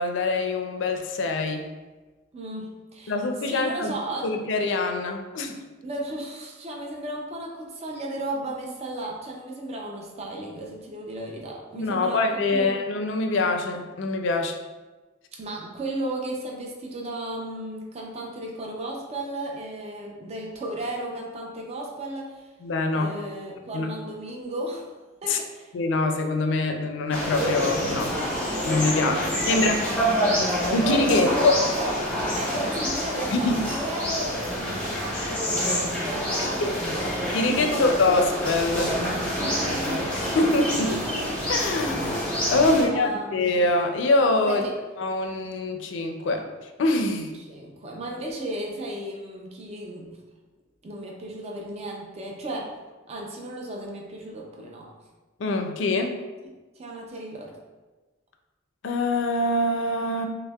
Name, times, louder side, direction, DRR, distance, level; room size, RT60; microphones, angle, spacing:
voice 1, 0.0-1.7 3.1-4.0 4.2-5.6 11.7-14.6 22.6-23.1 23.7-23.9 25.3-25.4 25.7-28.2 28.6-29.8 30.7-31.5 33.3-33.6 36.4-36.7 37.3-38.9 40.2-41.0 41.5-44.7 45.0-46.5 46.8-47.3 55.4-56.2 58.8-60.3, left 2 dB, 70° left, 5 dB, 0.4 m, -24 dB
voice 2, 2.3-3.2 3.5-4.3 5.8-12.8 15.4-22.5 22.9-24.9 25.2-25.7 28.9-30.1 31.1-31.9 32.3-37.1 37.5-38.0 39.4-40.3 40.8-41.2 42.7-43.5 44.5-44.7 47.4-50.2 50.8-52.8 53.1-54.9 56.8-57.6, right 1 dB, 35° right, -1 dB, 0.4 m, -34 dB
sound 1, 27.1-42.8, equal, 5° left, 0.8 m, -27 dB
5.3 x 2.1 x 2.3 m, 1.2 s
head